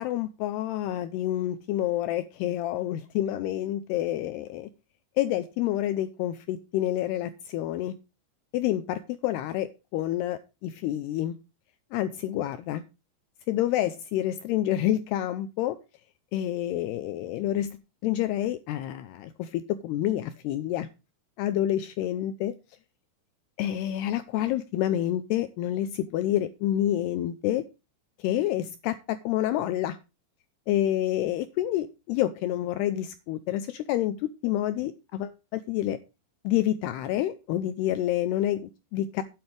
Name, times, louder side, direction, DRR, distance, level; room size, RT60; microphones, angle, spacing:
voice 1, 0.0-4.7 5.2-7.9 8.5-11.3 11.9-12.8 13.5-15.8 16.3-20.9 21.4-22.5 23.6-27.6 28.2-30.0 30.7-36.0 36.4-39.2, left 12 dB, 80° left, 11 dB, 2.4 m, -28 dB
11.5 x 9.7 x 3.3 m, 0.28 s
omnidirectional pair, 5.3 m